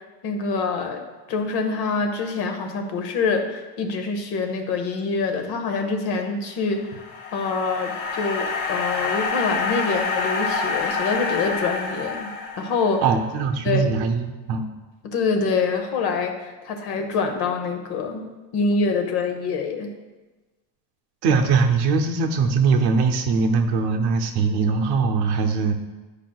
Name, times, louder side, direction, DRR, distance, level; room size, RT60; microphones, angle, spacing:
voice 1, 0.2-1.0 1.3-6.8 7.3-12.3 12.6-13.0 13.6-14.0 15.0-18.2 18.5-19.9, left 4 dB, 50° left, 5 dB, 0.9 m, -25 dB
sound 1, 6.7-13.1, left 4 dB, 75° left, 1.1 m, -27 dB
voice 2, 13.0-14.7 21.2-25.7, right 4 dB, 55° right, 5 dB, 0.7 m, -21 dB
11.0 x 5.0 x 2.3 m, 1.2 s
cardioid pair, 170°, 48 cm